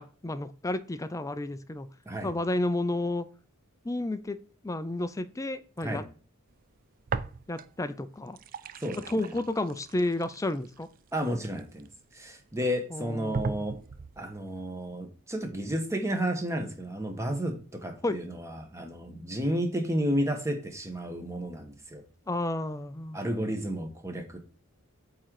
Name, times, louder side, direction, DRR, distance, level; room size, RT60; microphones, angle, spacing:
voice 1, 0.0-1.9 2.2-3.3 3.8-4.4 4.6-6.0 7.5-8.4 9.1-10.9 12.9-13.6 18.0-18.2 22.3-23.2, left 2 dB, 15° left, 13 dB, 0.5 m, -31 dB
sound 1, 7.1-7.9 8.2-12.1 12.7-12.8 13.3-14.2, right 4 dB, 40° right, 0.4 m, -38 dB
voice 2, 8.8-9.3 11.1-11.9 12.1-13.8 14.2-22.0 23.1-24.4, equal, 15° right, 4 dB, 1.4 m, -32 dB
8.5 x 3.8 x 4.8 m, 0.40 s
head